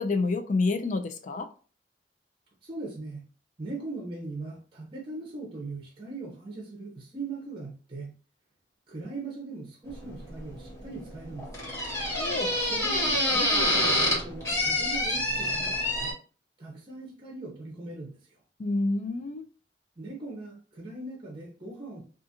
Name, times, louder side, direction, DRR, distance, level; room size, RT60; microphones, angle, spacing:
voice 1, 0.0-1.5 12.2-12.5 18.6-19.4, left 3 dB, 45° left, 7 dB, 0.4 m, -28 dB
voice 2, 2.6-3.2 3.6-8.2 8.9-11.7 12.6-16.1 16.6-18.4 20.0-22.0, right 3 dB, 30° right, -1 dB, 0.7 m, -40 dB
sound 1, 9.9-16.1, left 1 dB, 20° left, 1.1 m, -28 dB
2.4 x 2.4 x 2.7 m, 0.38 s
head